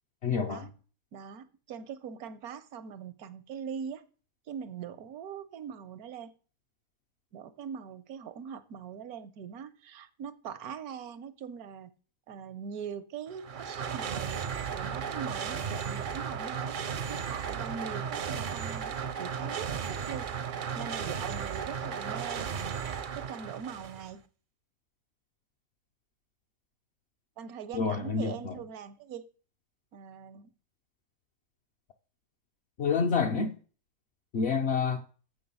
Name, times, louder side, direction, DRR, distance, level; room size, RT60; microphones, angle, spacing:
voice 1, 0.2-0.7 27.7-28.6 32.8-33.6 34.3-35.0, left 5 dB, 55° left, 0.8 m, -28 dB
voice 2, 1.1-4.0 4.5-6.3 7.3-11.9 12.3-14.4 14.7-16.8 17.1-20.3 20.7-22.8 23.3-24.2 27.4-29.2 29.9-30.5, right 7 dB, 85° right, 1.2 m, -42 dB
sound 1, 13.3-24.1, right 7 dB, 55° right, 0.5 m, -35 dB
7.7 x 6.4 x 5.3 m
omnidirectional pair, 1.5 m